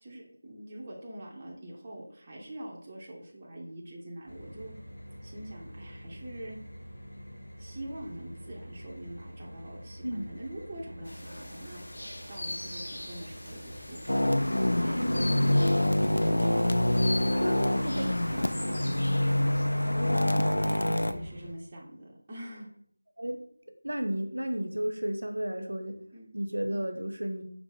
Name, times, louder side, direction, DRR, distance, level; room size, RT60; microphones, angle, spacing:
voice 1, 0.0-4.7 5.2-6.6 7.6-14.0 14.4-16.7 17.7-19.8 20.5-22.7 26.1-26.3, right 1 dB, 20° right, -4 dB, 0.5 m, -44 dB
sound 1, 4.3-21.5, left 1 dB, 40° left, 1.3 m, -45 dB
sound 2, 11.0-19.6, left 1 dB, 55° left, 1.0 m, -42 dB
sound 3, 14.1-21.1, left 1 dB, 85° left, 0.4 m, -26 dB
voice 2, 17.3-18.1 19.8-20.2 23.2-23.4 23.8-26.0 26.3-27.4, right 1 dB, 85° right, 5 dB, 0.8 m, -33 dB
5.7 x 2.0 x 3.8 m, 0.63 s
figure-of-eight pair, 175°, 0 cm